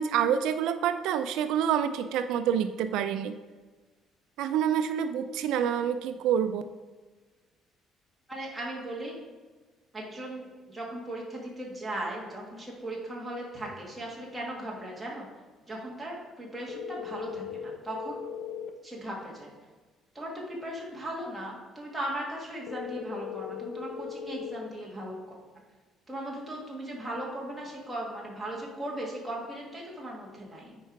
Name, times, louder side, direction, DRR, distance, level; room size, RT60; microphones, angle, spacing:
voice 1, 0.0-3.3 4.4-6.6, right 8 dB, 75° right, 10 dB, 0.4 m, -27 dB
voice 2, 8.3-9.1 9.9-15.3 15.7-18.2 18.8-19.5 20.1-25.2 26.1-30.8, right 1 dB, 5° right, -4 dB, 1.6 m, -37 dB
sound 1, 16.7-18.7 22.7-24.7, left 8 dB, 65° left, 0.7 m, -38 dB
9.2 x 4.5 x 4.7 m, 1.3 s
cardioid pair, 180°, 0 cm